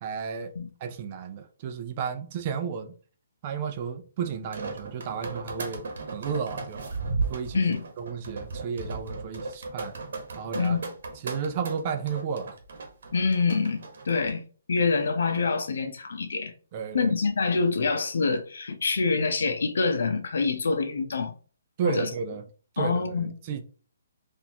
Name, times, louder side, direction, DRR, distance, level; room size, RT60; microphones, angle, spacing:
voice 1, 0.0-0.5 0.8-3.0 3.4-6.8 7.3-7.6 8.0-10.0 10.4-10.8 11.2-12.6 16.7-17.1 21.8-22.4 22.7-23.6, right 6 dB, 35° right, 0.5 m, -33 dB
sound 1, 4.3-14.3, right 3 dB, 65° right, 1.1 m, -36 dB
voice 2, 13.1-14.4 14.7-16.5 16.9-21.3 21.8-22.1 22.8-23.3, left 4 dB, 70° left, 0.7 m, -26 dB
4.0 x 2.6 x 2.9 m
hypercardioid pair, 155°, 0 cm